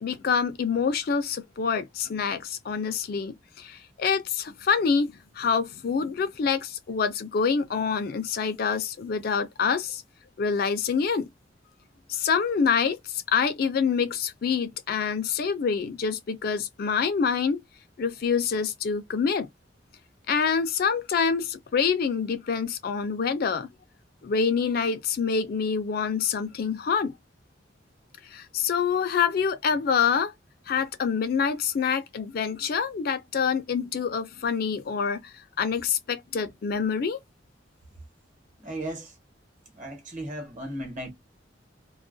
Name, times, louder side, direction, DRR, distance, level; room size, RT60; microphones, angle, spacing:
voice 1, 0.0-10.0 10.4-11.3 12.1-17.6 18.0-19.5 20.3-23.7 24.2-27.1 28.3-30.3 30.7-37.2, left 6 dB, 55° left, 0.4 m, -26 dB
voice 2, 38.6-39.2 39.7-41.1, right 1 dB, 45° right, 1.1 m, -36 dB
2.3 x 2.1 x 2.5 m
head